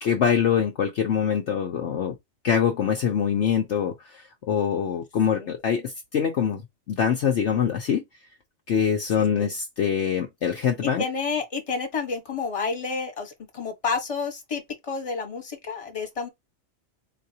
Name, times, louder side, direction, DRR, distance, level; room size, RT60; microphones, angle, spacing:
voice 1, 0.0-2.1 2.4-6.6 6.9-8.0 8.7-11.0, left 7 dB, 60° left, 0.9 m, -24 dB
voice 2, 9.1-9.5 11.0-16.3, left 4 dB, 25° left, 1.2 m, -30 dB
4.1 x 2.3 x 2.7 m
omnidirectional pair, 1.4 m